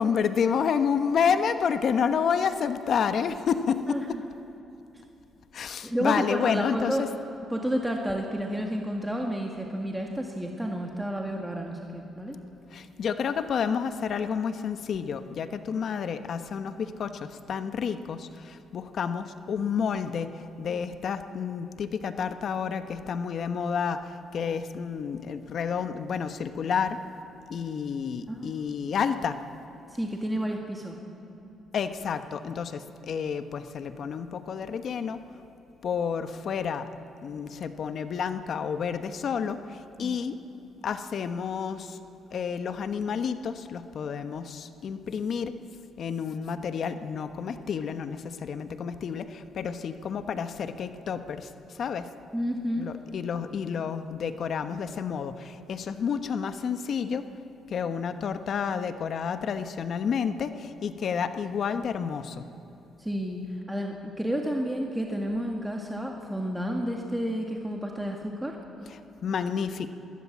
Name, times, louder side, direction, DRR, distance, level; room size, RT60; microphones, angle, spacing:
voice 1, 0.0-4.0 5.5-7.1 12.7-27.0 27.5-29.4 31.7-35.2 35.8-36.9 37.2-40.4 40.8-42.0 42.3-45.6 46.0-51.5 51.8-52.1 52.8-57.3 57.7-62.4 68.9-69.9, left 6 dB, 60° left, 10 dB, 1.1 m, -30 dB
voice 2, 3.9-4.2 5.8-7.0 7.5-12.4 28.3-28.6 29.9-31.0 40.0-40.2 52.3-52.9 63.0-63.4 63.7-68.6, equal, 5° right, 1 dB, 2.0 m, -31 dB
21.5 x 17.5 x 7.4 m, 2.9 s
cardioid pair, 90°, 0 cm